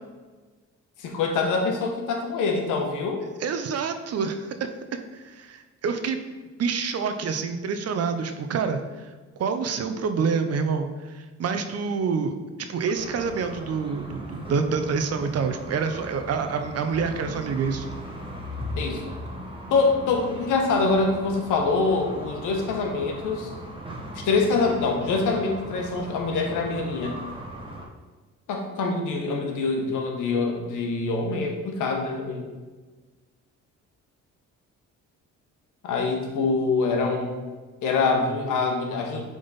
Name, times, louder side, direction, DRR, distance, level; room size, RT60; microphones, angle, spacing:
voice 1, 1.0-3.2 18.8-19.1 19.7-23.5 24.3-27.2 28.5-32.5 35.8-37.4 37.8-39.2, left 4 dB, 85° left, 2 dB, 1.1 m, -25 dB
voice 2, 3.4-4.7 5.1-6.2 6.6-9.1 9.4-12.4 12.7-17.9, right 5 dB, 55° right, 8 dB, 0.7 m, -27 dB
sound 1, 12.9-27.9, equal, 15° right, 1.1 m, -38 dB
6.8 x 3.7 x 4.1 m, 1.3 s
cardioid pair, 90°, 30 cm